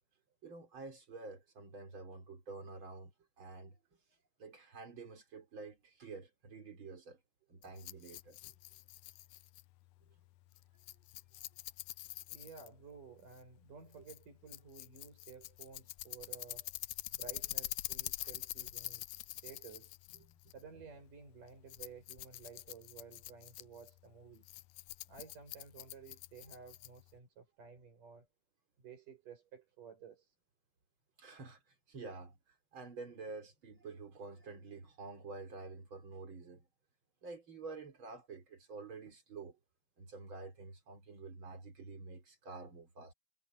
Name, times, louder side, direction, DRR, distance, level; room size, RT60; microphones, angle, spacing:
voice 1, 0.4-3.8 4.4-7.2 7.5-8.5 10.0-10.1 12.1-12.2 20.1-20.4 31.2-36.7 37.2-39.6 40.0-43.1, right 3 dB, 35° right, 4.9 m, -49 dB
Rattle, 7.6-27.2, left 18 dB, 85° left, 1.7 m, -46 dB
voice 2, 12.3-16.7 17.1-19.1 19.4-20.0 20.5-24.5 25.1-28.3 28.8-30.4, right 5 dB, 70° right, 9.0 m, -54 dB
omnidirectional pair, 3.8 m